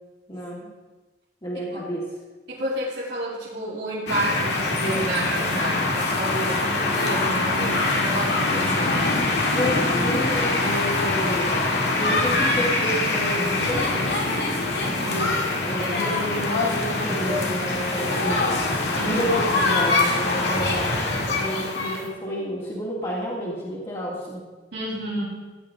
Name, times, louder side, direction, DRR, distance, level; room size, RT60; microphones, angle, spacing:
voice 1, 0.3-0.6 1.4-2.2 9.5-11.5 12.0-14.2 15.1-18.5 19.0-24.4, equal, 25° left, -7 dB, 2.2 m, -30 dB
voice 2, 2.5-9.0 14.7-15.2 18.9-19.2 24.7-25.2, right 1 dB, 70° right, -8 dB, 3.3 m, -30 dB
sound 1, 4.1-22.1, left 2 dB, 70° left, 2.1 m, -23 dB
15.0 x 11.0 x 3.7 m, 1.3 s
head